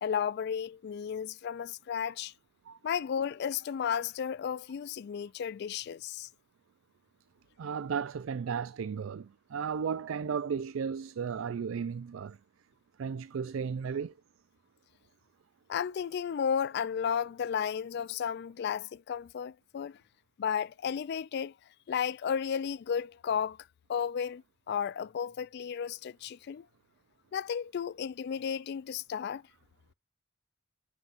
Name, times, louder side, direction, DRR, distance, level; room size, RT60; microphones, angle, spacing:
voice 1, 0.0-2.3 2.8-6.3 15.7-20.0 20.4-21.5 21.9-23.6 23.9-26.7 27.3-29.4, left 7 dB, 55° left, 0.3 m, -33 dB
voice 2, 7.6-12.4 13.0-14.1, right 6 dB, 85° right, 0.4 m, -34 dB
9.4 x 5.7 x 2.5 m
head